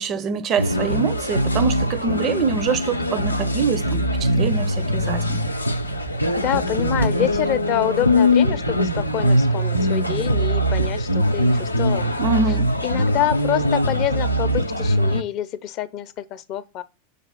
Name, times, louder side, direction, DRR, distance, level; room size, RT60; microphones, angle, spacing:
voice 1, 0.0-5.4 12.2-12.7, right 5 dB, 30° right, 0.5 m, -24 dB
sound 1, 0.6-15.2, equal, 85° left, 0.5 m, -22 dB
sound 2, 4.2-7.6, right 2 dB, 80° right, 1.5 m, -37 dB
voice 2, 6.3-12.1 12.8-16.8, left 12 dB, 40° left, 0.5 m, -26 dB
6.5 x 2.9 x 5.2 m
figure-of-eight pair, 90°, 0 cm